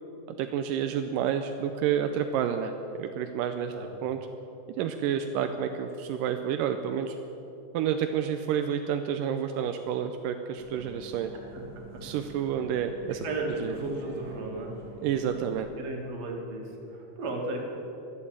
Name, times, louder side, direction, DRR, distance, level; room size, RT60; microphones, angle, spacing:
voice 1, 0.3-2.7 3.0-3.7 4.0-4.3 4.8-7.2 7.7-11.3 12.0-13.2 13.6-13.8 15.0-15.7, right 8 dB, 85° right, 7 dB, 2.2 m, -29 dB
Bus, 10.6-15.6, equal, 25° right, 2.5 m, -48 dB
voice 2, 13.2-14.7 15.8-16.6 16.9-17.6, right 2 dB, 50° right, 0 dB, 3.2 m, -34 dB
12.5 x 12.0 x 8.8 m, 3.0 s
omnidirectional pair, 3.9 m